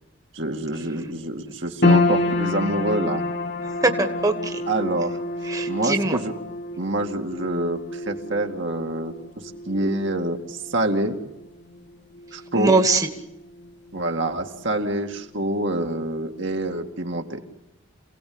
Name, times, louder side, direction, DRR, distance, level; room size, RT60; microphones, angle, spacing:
voice 1, 0.3-3.2 4.7-5.2 5.7-6.4 6.8-11.2 12.3-12.8 13.9-17.4, right 1 dB, 60° right, 3 dB, 2.3 m, -26 dB
sound 1, 1.8-14.2 14.5-15.4 15.9-16.0, left 2 dB, 55° left, 1.8 m, -28 dB
voice 2, 3.8-4.6 5.4-6.2 12.5-13.1, right 2 dB, 15° right, 5 dB, 1.7 m, -21 dB
28.0 x 18.0 x 8.8 m, 0.89 s
head